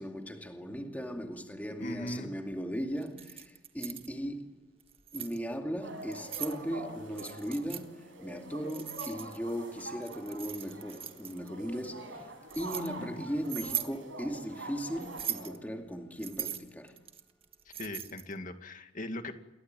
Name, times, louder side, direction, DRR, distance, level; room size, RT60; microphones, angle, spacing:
voice 1, 0.0-4.6 5.1-17.0, equal, 10° left, 2.4 m, -38 dB
voice 2, 1.8-2.4 13.0-13.2 17.8-19.3, left 1 dB, 45° left, 2.3 m, -39 dB
Keys jangling, 3.0-4.1 4.8-5.4 6.0-6.6 7.2-7.8 8.7-9.6 10.0-11.5 12.1-12.9 13.4-13.9 15.0-15.6 16.2-18.3, right 9 dB, 30° right, 1.6 m, -39 dB
sound 1, 5.8-15.5, right 1 dB, 85° right, 7.4 m, -45 dB
29.0 x 21.5 x 9.2 m
head